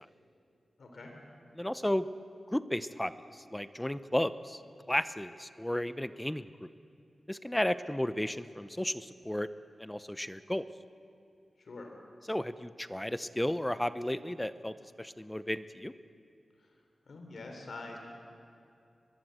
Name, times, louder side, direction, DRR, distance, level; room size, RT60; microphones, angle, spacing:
voice 1, 0.8-1.1 11.6-11.9 16.6-16.7 17.1-18.0, left 3 dB, 65° left, 2 dB, 3.5 m, -45 dB
voice 2, 1.6-2.1 2.5-4.6 4.9-6.7 7.3-9.5 9.8-10.7 12.3-15.9, left 1 dB, 10° left, 13 dB, 0.6 m, -33 dB
23.0 x 21.5 x 7.9 m, 2.6 s
wide cardioid pair, 95°, 0 cm